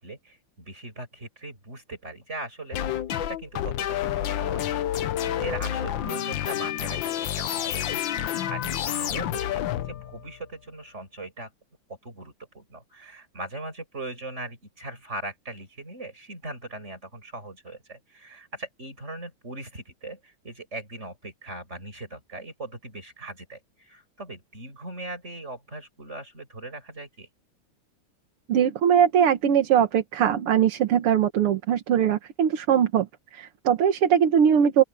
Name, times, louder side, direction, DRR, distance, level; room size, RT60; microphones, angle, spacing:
voice 1, 0.0-4.6 4.9-8.0 8.5-11.5 12.0-27.3, right 2 dB, 30° right, 7.0 m, -40 dB
sound 1, 2.7-10.5, left 11 dB, 65° left, 1.5 m, -29 dB
voice 2, 28.5-33.1 33.3-34.8, right 8 dB, 85° right, 2.2 m, -21 dB
open air
omnidirectional pair, 2.4 m